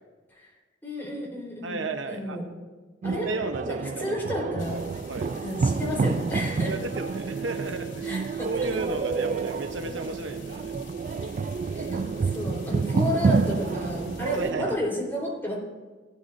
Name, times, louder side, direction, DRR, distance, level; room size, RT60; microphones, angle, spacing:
voice 1, 0.8-1.8 2.1-2.4 3.0-3.3 3.6-4.8 5.4-6.7 8.0-8.8 11.7-15.6, left 1 dB, 10° left, -4 dB, 3.7 m, -32 dB
voice 2, 1.6-2.4 3.1-4.1 5.1-5.3 6.7-8.2 8.4-10.8 14.3-14.8, right 3 dB, 80° right, 6 dB, 0.9 m, -33 dB
sound 1, 3.0-14.8, right 4 dB, 40° right, 0.3 m, -29 dB
sound 2, 4.6-14.5, left 2 dB, 80° left, 2.1 m, -46 dB
17.0 x 9.9 x 2.6 m, 1.3 s
head